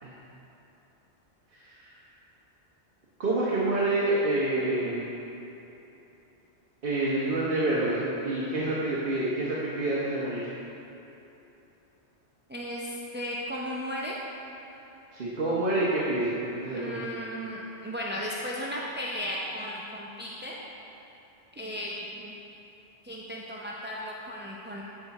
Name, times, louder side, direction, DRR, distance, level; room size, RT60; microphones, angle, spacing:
voice 1, 3.2-5.1 6.8-10.5 15.1-17.0, right 2 dB, 50° right, -7 dB, 1.1 m, -27 dB
voice 2, 12.5-14.2 16.7-20.6 21.6-22.4 23.0-24.8, equal, 15° right, -4 dB, 0.3 m, -35 dB
9.4 x 5.1 x 4.1 m, 3.0 s
omnidirectional pair, 1.2 m